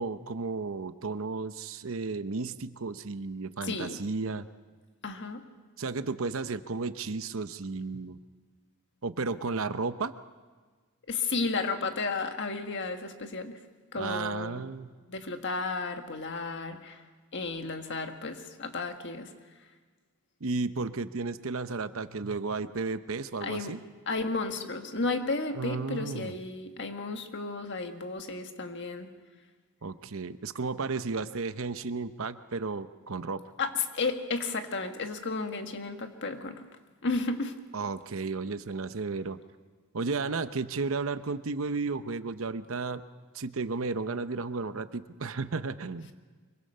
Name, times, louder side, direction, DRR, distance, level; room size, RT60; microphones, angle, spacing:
voice 1, 0.0-4.5 5.8-8.2 9.0-10.1 14.0-14.9 20.4-23.8 25.5-26.3 29.8-33.4 37.7-39.4 39.9-43.0 43.3-46.1, right 4 dB, 65° right, 12 dB, 0.8 m, -33 dB
voice 2, 3.6-4.0 5.0-5.4 11.1-13.6 13.9-14.6 15.1-17.0 17.3-19.3 23.4-23.7 24.1-29.1 33.6-36.7 37.0-37.6, left 3 dB, 55° left, 6 dB, 1.6 m, -33 dB
24.5 x 23.0 x 5.5 m, 1.4 s
head